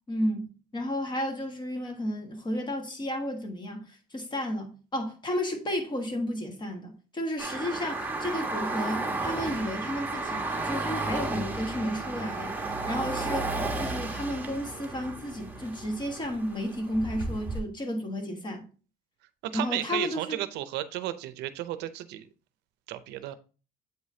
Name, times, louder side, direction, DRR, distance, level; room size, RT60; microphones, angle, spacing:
voice 1, 0.1-13.5 13.7-18.7 19.5-20.4, equal, 25° left, 1.5 m, -32 dB
sound 1, 7.4-17.6, right 2 dB, 10° right, 1.2 m, -33 dB
voice 2, 19.4-22.3 22.9-23.3, right 13 dB, 85° right, 0.6 m, -33 dB
8.0 x 4.8 x 2.7 m
cardioid pair, 110°, 17 cm